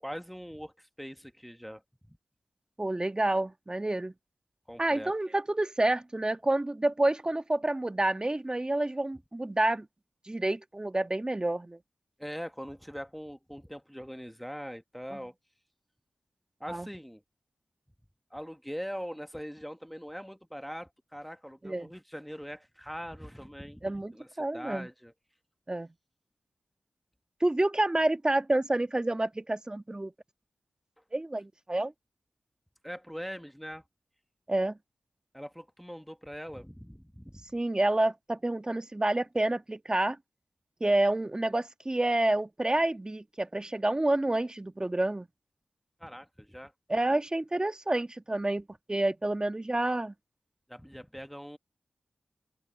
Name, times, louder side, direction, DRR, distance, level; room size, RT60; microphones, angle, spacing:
voice 1, 0.0-1.8 2.1-2.2 4.7-5.1 12.2-15.3 16.6-17.2 18.3-25.1 32.8-33.8 35.3-37.4 46.0-46.7 47.1-47.2 50.7-51.6, equal, ahead, 1.3 m, -42 dB
voice 2, 2.8-4.1 4.8-9.9 10.2-11.8 16.7-16.9 21.6-21.9 23.8-24.9 25.7-25.9 27.4-30.1 31.1-31.9 34.5-34.8 37.5-40.2 40.8-45.3 46.9-50.1, right 1 dB, 25° right, 1.5 m, -28 dB
cardioid pair, 40°, 3 cm